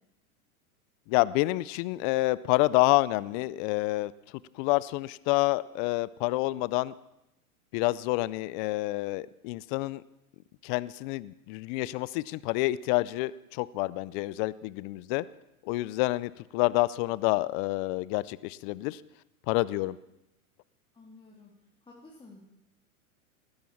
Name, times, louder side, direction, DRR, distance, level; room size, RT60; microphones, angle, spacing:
voice 1, 1.1-4.1 4.6-6.9 7.7-10.0 10.6-15.2 15.7-19.0 19.5-20.0, left 20 dB, 35° left, 19 dB, 0.5 m, -28 dB
voice 2, 20.9-22.4, left 3 dB, 10° left, -2 dB, 2.7 m, -53 dB
18.5 x 10.5 x 7.2 m, 0.89 s
hypercardioid pair, 115°, 44 cm